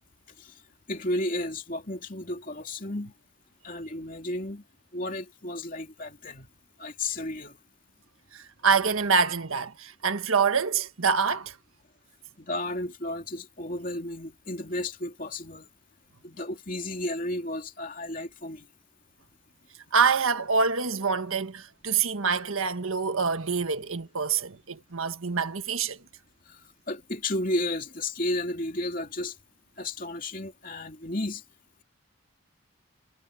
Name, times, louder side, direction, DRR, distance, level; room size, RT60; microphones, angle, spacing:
voice 1, 0.9-3.1 3.6-4.6 4.9-6.5 6.8-7.6 12.4-15.7 16.2-18.7 26.5-29.4 29.8-31.4, left 1 dB, 40° left, 3.1 m, -33 dB
voice 2, 8.3-11.5 19.9-26.0, right 5 dB, 85° right, 1.5 m, -26 dB
head